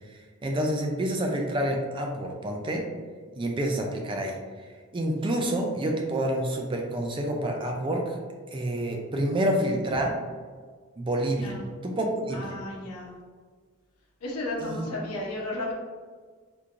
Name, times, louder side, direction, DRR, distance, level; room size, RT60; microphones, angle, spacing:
voice 1, 0.1-2.8 3.4-4.7 4.9-8.2 8.5-10.2 11.0-11.5 11.8-12.5 14.6-14.9, right 1 dB, 20° right, 2 dB, 0.3 m, -28 dB
voice 2, 11.3-11.7 12.3-13.2 14.2-15.7, left 1 dB, 85° left, -2 dB, 0.8 m, -34 dB
3.6 x 2.9 x 2.5 m, 1.5 s
head